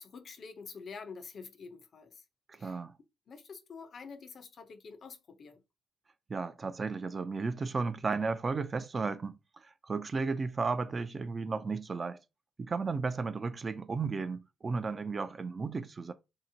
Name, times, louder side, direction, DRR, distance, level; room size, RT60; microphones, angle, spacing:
voice 1, 0.0-2.2 2.6-2.8 3.3-5.6, left 5 dB, 50° left, 0.5 m, -47 dB
voice 2, 2.5-2.9 6.3-9.4 9.9-12.2 12.6-16.1, right 4 dB, 35° right, 0.3 m, -34 dB
2.7 x 2.0 x 2.6 m
cardioid pair, 90°, 0 cm